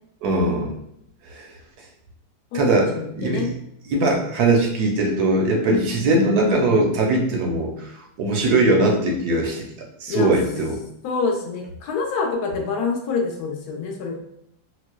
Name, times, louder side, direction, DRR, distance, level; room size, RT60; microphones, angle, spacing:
voice 1, 0.2-0.8 1.2-1.5 2.5-3.6 3.9-9.7 10.0-10.8, right 2 dB, 70° right, 1 dB, 1.0 m, -20 dB
voice 2, 2.9-3.5 5.7-5.8 10.1-10.3 11.0-14.2, left 4 dB, 70° left, 1 dB, 1.0 m, -26 dB
4.4 x 2.0 x 2.2 m, 0.74 s
omnidirectional pair, 2.0 m